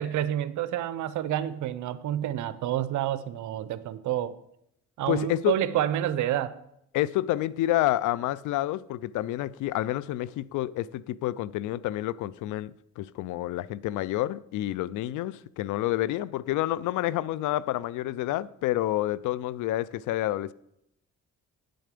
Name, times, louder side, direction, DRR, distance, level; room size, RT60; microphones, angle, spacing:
voice 1, 0.0-4.3 5.0-6.6, right 12 dB, 75° right, 0.7 m, -29 dB
voice 2, 5.1-5.6 6.9-20.5, left 15 dB, 85° left, 0.4 m, -29 dB
9.2 x 7.8 x 5.1 m
cardioid pair, 90°, 30 cm